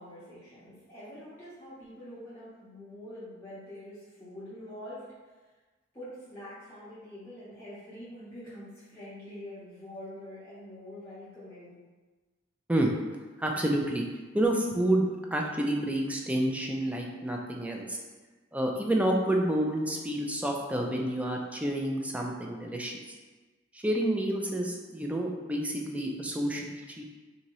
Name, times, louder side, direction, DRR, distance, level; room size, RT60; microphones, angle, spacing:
voice 1, 0.0-5.0 5.9-11.8, left 1 dB, 15° left, -13 dB, 0.9 m, -45 dB
voice 2, 13.4-14.1 14.3-18.0 18.5-23.2 23.7-27.0, right 1 dB, 5° right, 0 dB, 0.4 m, -29 dB
4.0 x 2.7 x 3.0 m, 1.3 s
head